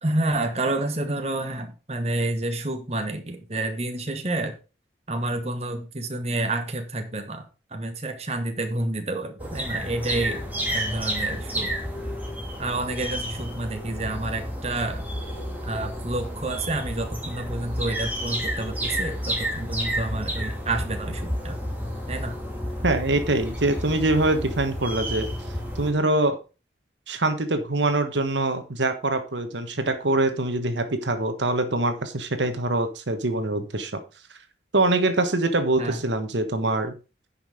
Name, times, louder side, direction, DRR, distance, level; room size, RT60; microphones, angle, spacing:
voice 1, 0.0-4.6 5.1-7.4 7.7-10.4 10.7-11.7 12.6-15.0 15.6-21.6 22.1-22.4 35.8-36.0, right 2 dB, 35° right, 5 dB, 1.3 m, -29 dB
sound 1, 9.4-25.9, equal, 10° right, 2.8 m, -31 dB
voice 2, 22.8-25.3 25.7-26.4 27.1-33.9 34.7-36.9, right 2 dB, 80° right, 8 dB, 1.4 m, -24 dB
10.0 x 5.8 x 5.0 m, 0.31 s
head